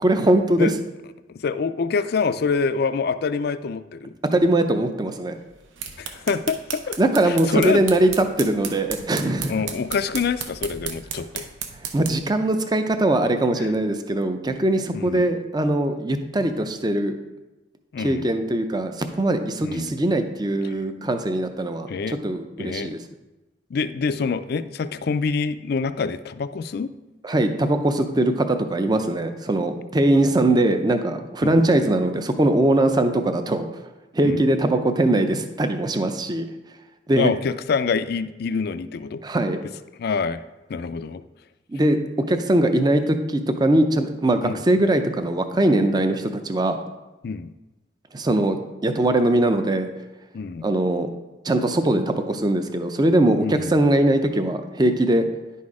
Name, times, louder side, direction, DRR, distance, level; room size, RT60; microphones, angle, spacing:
voice 1, 0.0-0.7 4.3-5.4 7.0-9.5 11.9-17.2 18.0-21.9 22.2-23.0 27.2-33.7 34.1-36.4 37.1-37.3 39.2-39.6 41.7-42.0 42.3-46.8 48.1-48.6 48.8-49.9 50.6-51.1 51.4-55.3, right 1 dB, 20° right, 7 dB, 0.5 m, -21 dB
voice 2, 1.3-4.1 6.0-7.0 7.2-7.8 9.5-11.5 13.5-13.7 14.9-15.3 17.9-18.3 19.6-19.9 20.6-20.7 21.9-22.2 22.6-22.9 23.7-26.9 31.4-31.5 34.2-34.4 37.2-39.2 40.0-40.4 40.7-41.2 44.4-44.6 47.2-47.5 50.3-50.7 53.4-53.8, left 5 dB, 55° left, 13 dB, 0.4 m, -26 dB
sound 1, 5.5-12.3, right 7 dB, 85° right, 0.9 m, -35 dB
10.5 x 4.2 x 4.8 m, 1.1 s
head